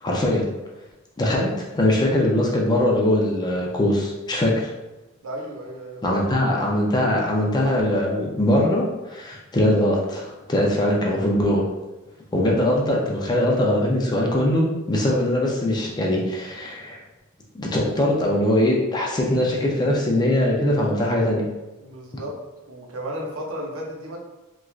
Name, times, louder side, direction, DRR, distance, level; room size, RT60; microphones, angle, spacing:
voice 1, 0.0-0.5 1.2-4.7 6.0-11.6 12.3-17.0 17.5-21.4, left 1 dB, 20° left, -2 dB, 0.4 m, -21 dB
voice 2, 5.2-6.2 21.8-22.4 22.7-24.2, right 1 dB, 65° right, -1 dB, 0.7 m, -34 dB
3.0 x 2.3 x 2.4 m, 1.1 s
head